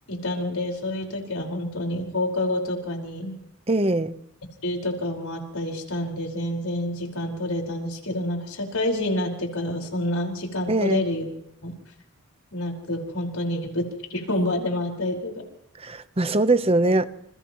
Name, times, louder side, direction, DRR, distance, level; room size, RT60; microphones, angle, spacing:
voice 1, 0.1-3.4 4.6-11.2 11.6-11.7 12.5-15.4 16.8-16.9, left 1 dB, 90° left, 5.1 m, -28 dB
voice 2, 3.7-4.2 10.7-11.0 15.8-17.0, right 2 dB, 25° right, 0.9 m, -22 dB
30.0 x 28.5 x 3.1 m
head